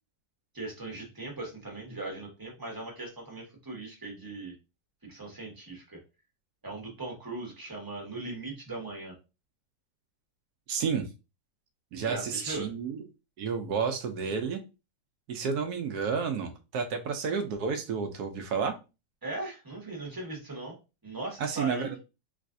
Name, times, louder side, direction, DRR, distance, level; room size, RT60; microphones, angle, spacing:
voice 1, 0.5-4.5 5.0-6.0 6.6-9.1 12.0-12.7 19.2-20.8 21.0-21.9, right 2 dB, 15° right, -1 dB, 0.7 m, -39 dB
voice 2, 10.7-11.1 11.9-13.0 13.4-14.6 15.3-18.8 21.4-22.0, right 6 dB, 70° right, 6 dB, 1.0 m, -31 dB
3.4 x 3.1 x 2.6 m, 0.28 s
omnidirectional pair, 2.1 m